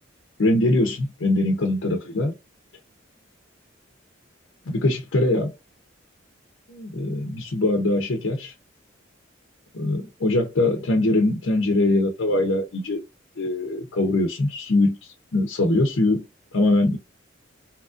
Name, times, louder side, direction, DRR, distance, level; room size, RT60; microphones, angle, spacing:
voice 1, 0.4-2.3 4.7-5.5 6.7-8.5 9.7-13.0 13.4-16.2 16.5-17.0, left 2 dB, 80° left, 0.7 m, -22 dB
2.9 x 2.4 x 2.4 m
head